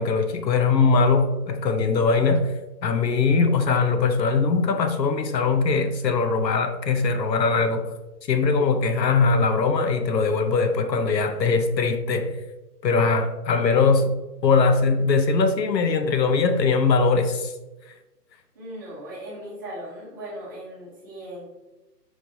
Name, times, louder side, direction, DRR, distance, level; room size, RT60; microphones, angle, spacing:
voice 1, 0.0-2.5 2.8-7.9 8.3-12.4 12.8-14.1 14.4-17.5, left 4 dB, 85° left, 0.7 m, -21 dB
voice 2, 18.5-21.4, right 1 dB, 15° right, 0.8 m, -38 dB
5.0 x 3.1 x 2.6 m
hypercardioid pair, 155°, 49 cm